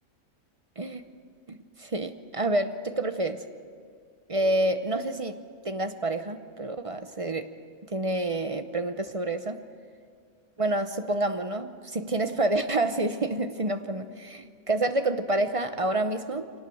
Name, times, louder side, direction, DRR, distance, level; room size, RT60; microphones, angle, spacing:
voice 1, 1.5-3.5 4.3-7.5 7.9-9.6 10.6-16.5, right 2 dB, 30° right, 9 dB, 0.7 m, -28 dB
24.5 x 18.5 x 7.9 m, 2.1 s
omnidirectional pair, 1.4 m